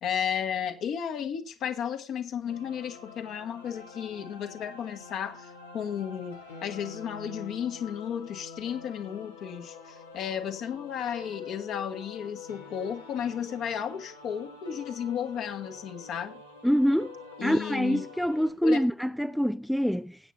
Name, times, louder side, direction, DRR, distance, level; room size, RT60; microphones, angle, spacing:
voice 1, 0.0-16.4 17.4-18.0 18.6-18.8, left 8 dB, 50° left, 1.6 m, -34 dB
sound 1, 2.5-18.5, left 5 dB, 80° left, 1.9 m, -46 dB
voice 2, 16.6-17.1 17.4-20.2, equal, ahead, 0.5 m, -25 dB
20.0 x 8.6 x 2.7 m
figure-of-eight pair, 60°, 0 cm